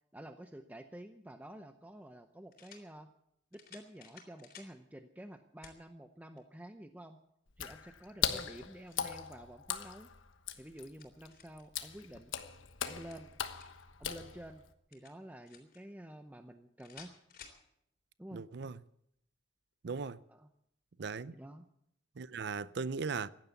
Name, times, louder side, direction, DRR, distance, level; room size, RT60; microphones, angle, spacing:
voice 1, 0.1-3.1 3.5-7.2 7.6-10.1 10.6-12.3 12.8-13.3 14.0-14.6 14.9-17.1 18.2-18.4 20.3-20.5 21.3-21.7, right 1 dB, 10° right, 0.6 m, -50 dB
sound 1, 1.3-1.4 2.5-2.9 3.5-4.7 5.6-5.8 6.4-6.5 8.3-9.1 10.5-11.7 12.8-13.9 14.9-15.8 16.8-17.6, left 6 dB, 50° left, 3.4 m, -56 dB
Water / Splash splatter, 7.5-14.7, left 8 dB, 80° left, 1.2 m, -40 dB
voice 2, 18.3-18.8 19.8-20.2 21.0-21.3 22.2-23.3, right 5 dB, 60° right, 0.5 m, -38 dB
15.5 x 11.0 x 8.3 m
head